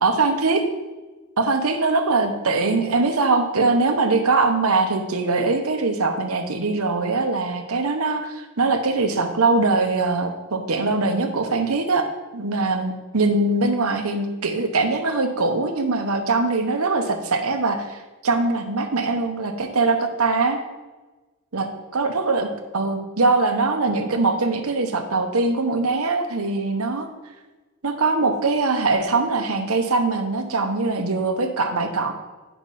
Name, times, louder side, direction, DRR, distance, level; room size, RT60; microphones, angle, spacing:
voice 1, 0.0-0.6 1.4-12.1 12.3-20.6 21.5-21.7 21.9-27.1 27.8-32.1, right 3 dB, 80° right, 6 dB, 1.0 m, -22 dB
10.0 x 5.9 x 4.2 m, 1.2 s
head